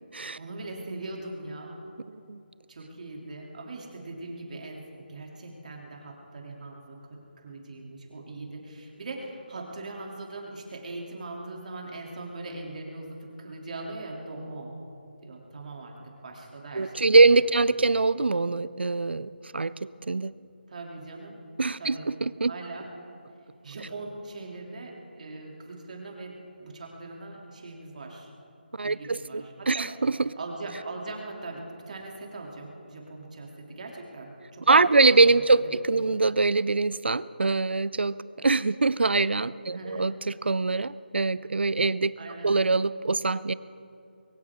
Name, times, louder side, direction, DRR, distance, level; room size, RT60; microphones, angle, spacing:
voice 1, 0.3-1.8 2.7-14.7 15.2-16.0 16.2-17.3 17.6-17.8 20.7-21.4 21.8-22.1 22.5-22.9 23.6-26.3 26.6-28.3 28.8-29.8 30.4-35.5 35.9-36.0 39.7-40.1 42.2-42.5, right 2 dB, 45° right, 0 dB, 2.9 m, -40 dB
voice 2, 16.7-20.3 21.6-22.5 28.7-30.3 34.7-42.1 42.4-43.5, right 3 dB, 85° right, 18 dB, 0.4 m, -23 dB
22.5 x 17.5 x 3.7 m, 2.7 s
figure-of-eight pair, 165°, 6 cm